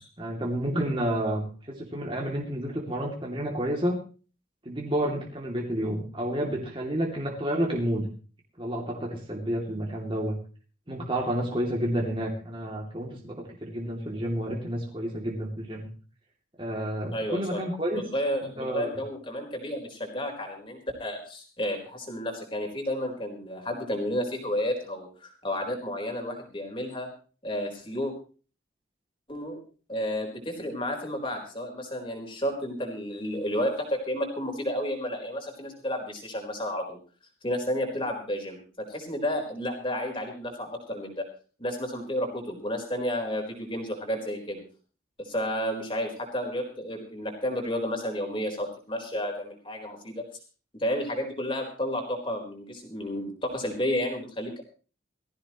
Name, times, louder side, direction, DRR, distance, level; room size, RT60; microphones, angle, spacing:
voice 1, 0.2-4.0 4.6-8.1 8.6-10.4 10.9-15.9 16.6-18.0 18.4-19.0, right 1 dB, 25° right, -1 dB, 2.7 m, -30 dB
voice 2, 17.1-17.6 17.9-27.1 27.4-28.1 29.3-29.6 29.9-37.0 37.4-41.2 41.6-44.6 45.2-50.2 50.8-54.6, equal, 25° left, 2 dB, 4.3 m, -31 dB
19.5 x 15.0 x 3.1 m, 0.37 s
head